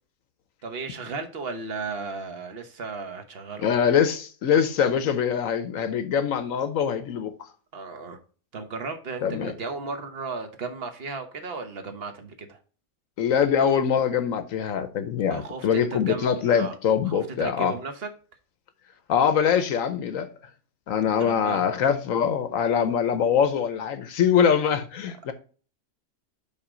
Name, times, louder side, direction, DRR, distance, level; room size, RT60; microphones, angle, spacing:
voice 1, 0.6-3.8 7.7-8.2 8.5-12.6 15.3-16.8 17.0-18.1 21.2-21.6, right 4 dB, 45° right, 1.2 m, -35 dB
voice 2, 3.6-7.3 9.2-9.5 13.2-17.8 19.1-20.3 20.9-25.3, left 7 dB, 70° left, 1.0 m, -23 dB
5.6 x 4.9 x 5.0 m
omnidirectional pair, 1.6 m